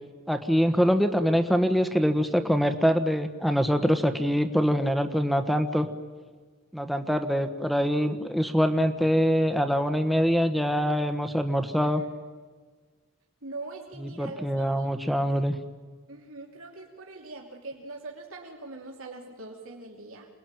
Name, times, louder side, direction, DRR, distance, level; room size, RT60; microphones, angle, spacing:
voice 1, 0.3-5.9 6.7-12.0 14.0-15.6, equal, ahead, 8 dB, 1.3 m, -24 dB
voice 2, 13.4-15.3 16.1-20.3, right 2 dB, 80° right, -1 dB, 3.0 m, -42 dB
28.0 x 20.5 x 9.0 m, 1.5 s
head